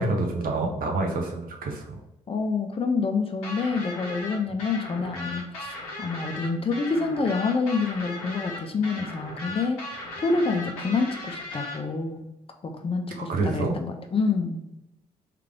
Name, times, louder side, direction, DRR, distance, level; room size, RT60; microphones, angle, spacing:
voice 1, 0.0-2.0 13.2-13.8, right 2 dB, 50° right, 1 dB, 1.0 m, -27 dB
voice 2, 2.3-12.3 12.6-14.7, left 4 dB, 30° left, 4 dB, 0.7 m, -27 dB
Drunk Guitar, 3.4-11.8, left 1 dB, 80° left, 0.7 m, -37 dB
3.3 x 3.3 x 3.6 m, 0.92 s
figure-of-eight pair, 40°, 18 cm